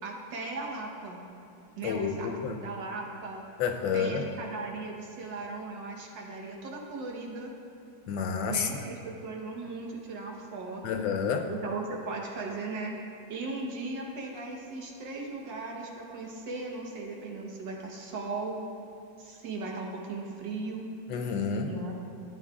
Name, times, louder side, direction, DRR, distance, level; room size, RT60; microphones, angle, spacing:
voice 1, 0.0-1.2 1.8-3.4 3.9-7.5 8.4-11.0 11.5-18.6 19.2-20.9 21.7-21.9, right 3 dB, 80° right, 0 dB, 1.8 m, -37 dB
voice 2, 1.8-2.6 3.6-4.3 8.1-8.7 10.8-11.5 21.1-21.7, left 6 dB, 85° left, 5 dB, 1.4 m, -29 dB
13.0 x 8.8 x 2.4 m, 2.8 s
omnidirectional pair, 2.0 m